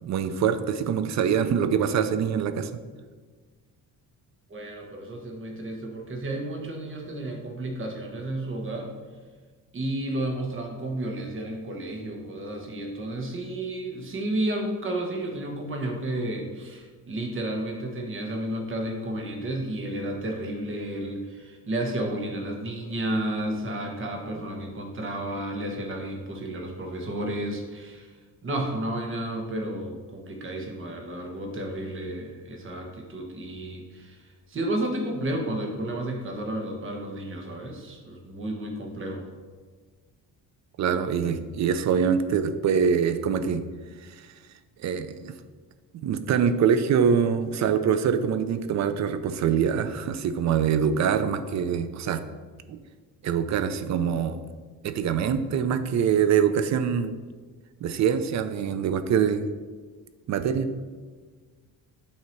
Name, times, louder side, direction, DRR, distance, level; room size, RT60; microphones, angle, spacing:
voice 1, 0.0-2.7 40.8-43.6 44.8-45.3 45.9-52.2 52.7-52.8 53.2-54.4 54.8-57.1 57.8-59.5 60.3-60.7, right 7 dB, 50° right, 10 dB, 0.5 m, -24 dB
voice 2, 4.5-8.9 9.7-28.1 28.4-39.3, right 1 dB, 35° right, 2 dB, 1.1 m, -32 dB
8.6 x 2.9 x 4.5 m, 1.5 s
cardioid pair, 130°, 36 cm